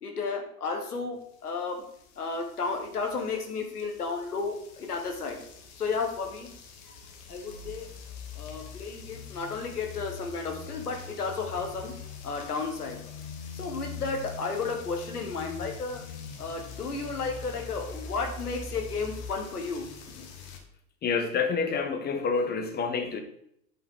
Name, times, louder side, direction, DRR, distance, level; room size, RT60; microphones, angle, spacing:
voice 1, 0.0-1.8 2.2-5.4 5.8-6.5 7.3-7.9 8.3-11.9 12.2-13.0 13.5-16.0 16.4-20.3, left 4 dB, 90° left, 3 dB, 1.5 m, -33 dB
sound 1, 2.0-20.6, left 4 dB, 50° left, 1.5 m, -43 dB
voice 2, 21.0-23.2, left 5 dB, 20° left, 6 dB, 1.1 m, -28 dB
8.6 x 5.6 x 3.7 m, 0.71 s
hypercardioid pair, 105°, 44 cm